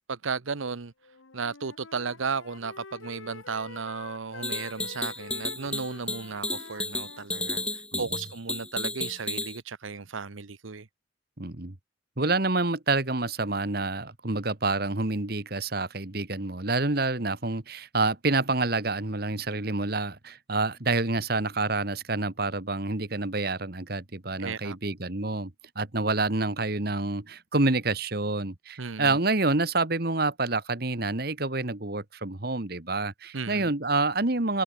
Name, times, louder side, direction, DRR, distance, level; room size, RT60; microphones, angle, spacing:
voice 1, 0.1-0.9 1.3-7.6 8.0-10.9 24.4-24.8 28.8-29.2 33.3-33.7, right 5 dB, 90° right, 0.9 m, -34 dB
Wind instrument woodwind instrument, 1.0-7.8, left 4 dB, 90° left, 1.4 m, -47 dB
sound 1, 4.4-9.6, left 2 dB, 5° left, 0.8 m, -32 dB
voice 2, 11.4-11.7 12.2-34.6, right 3 dB, 50° right, 1.7 m, -28 dB
head